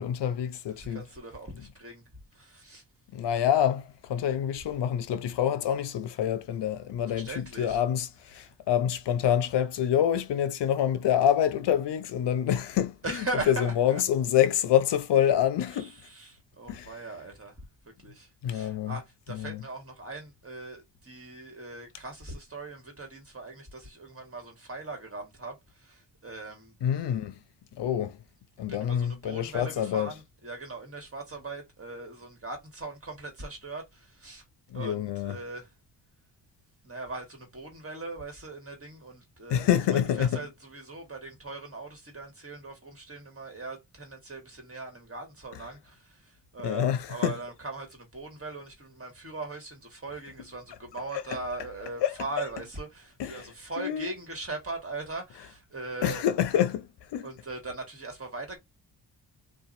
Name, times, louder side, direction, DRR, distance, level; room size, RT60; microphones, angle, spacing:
voice 1, 0.0-1.0 3.1-12.9 13.5-15.9 16.7-16.9 18.4-19.0 19.3-19.6 26.8-27.3 27.8-28.2 28.6-30.1 34.7-35.4 39.5-40.4 46.6-47.3 52.0-52.1 53.2-53.5 53.8-54.1 56.0-57.3, left 10 dB, 75° left, 0.7 m, -26 dB
voice 2, 0.7-2.0 2.3-2.8 7.1-7.8 8.3-8.5 13.0-14.0 15.7-17.5 18.0-26.8 28.7-34.4 34.7-35.7 36.8-56.2 57.2-58.6, right 3 dB, 30° right, 1.7 m, -40 dB
2.7 x 2.4 x 2.5 m
cardioid pair, 70°, 42 cm